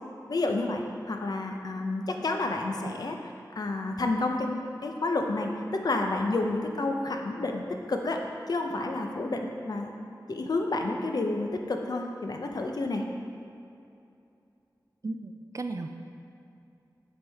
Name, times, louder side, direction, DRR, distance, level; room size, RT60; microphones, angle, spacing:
voice 1, 0.3-3.2 3.6-9.9 10.3-13.1, left 2 dB, 60° left, 3 dB, 0.5 m, -30 dB
voice 2, 15.0-15.9, right 3 dB, 45° right, 6 dB, 0.3 m, -35 dB
7.8 x 3.6 x 3.4 m, 2.6 s
wide cardioid pair, 70°, 7 cm